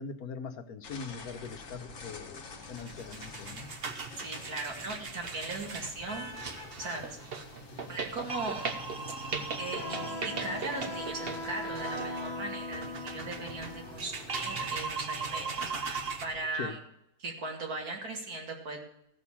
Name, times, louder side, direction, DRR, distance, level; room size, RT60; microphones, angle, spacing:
voice 1, 0.0-2.4 2.7-3.7 16.5-16.8, left 5 dB, 75° left, 8 dB, 1.4 m, -41 dB
sound 1, 0.8-16.5, left 2 dB, 60° left, 1.6 m, -48 dB
sound 2, 2.6-16.2, right 4 dB, 45° right, 1.1 m, -38 dB
voice 2, 4.2-7.2 7.9-8.7 9.6-16.8 17.2-18.8, right 2 dB, 70° right, 0 dB, 2.7 m, -38 dB
sound 3, 9.8-15.8, left 1 dB, 25° left, 2.0 m, -40 dB
14.5 x 6.5 x 7.2 m, 0.79 s
omnidirectional pair, 1.6 m